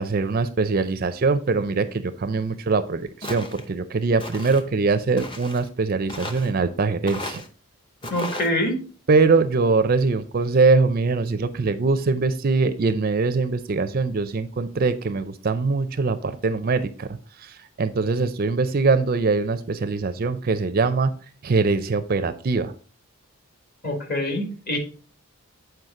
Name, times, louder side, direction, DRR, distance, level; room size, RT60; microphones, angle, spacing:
voice 1, 0.0-7.4 9.1-22.7, right 4 dB, 40° right, 12 dB, 0.4 m, -22 dB
Walk footsteps, 3.2-3.7 4.2-4.6 5.2-5.7 6.1-6.5 7.1-7.5 8.0-8.5, left 1 dB, 20° left, 0.7 m, -34 dB
voice 2, 8.1-8.7 23.8-24.8, left 1 dB, 45° left, 2 dB, 2.0 m, -25 dB
7.9 x 4.7 x 3.6 m, 0.38 s
head